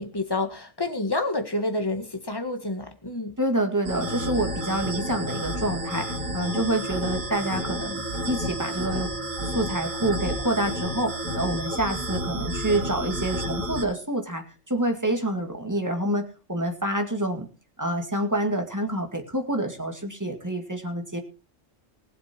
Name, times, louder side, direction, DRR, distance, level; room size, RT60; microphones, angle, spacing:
voice 1, 0.0-3.4, left 2 dB, 20° left, 6 dB, 1.7 m, -29 dB
voice 2, 3.4-6.1 6.3-9.1 9.5-17.5 17.8-21.2, right 1 dB, 15° right, 3 dB, 2.3 m, -27 dB
sound 1, 3.8-13.8, equal, 90° right, 2.8 m, -31 dB
20.0 x 7.6 x 4.6 m, 0.36 s
omnidirectional pair, 1.3 m